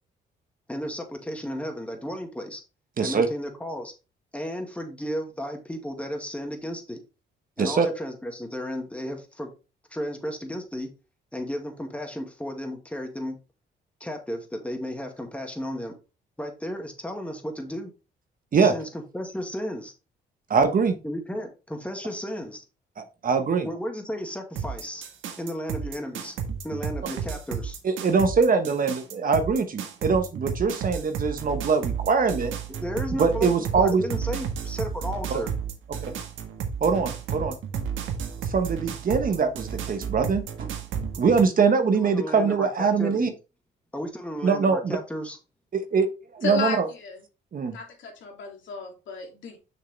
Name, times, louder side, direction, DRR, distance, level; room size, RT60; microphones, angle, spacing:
voice 1, 0.7-2.6 3.0-3.9 4.3-7.0 7.6-9.5 9.9-10.9 11.3-13.4 14.0-15.9 16.4-17.9 18.6-18.9 19.1-19.9 21.0-22.6 23.6-25.1 25.4-26.3 26.6-27.8 32.8-35.5 41.9-43.3 43.9-45.4, equal, 5° left, 3 dB, 2.2 m, -34 dB
voice 2, 3.0-3.3 7.6-7.9 18.5-18.7 20.5-21.0 23.0-23.7 27.8-32.5 33.2-34.0 35.3-35.4 36.0-36.1 36.8-37.6 38.5-40.7 41.2-43.3 44.4-45.0 45.7-46.1 46.3-46.9 47.5-47.8, right 5 dB, 45° right, 8 dB, 1.3 m, -23 dB
sound 1, 24.6-41.4, right 7 dB, 80° right, 1.6 m, -32 dB
voice 3, 46.4-47.2 47.7-49.6, left 5 dB, 70° left, 1 dB, 2.8 m, -33 dB
6.6 x 6.5 x 3.3 m, 0.30 s
cardioid pair, 90°, 20 cm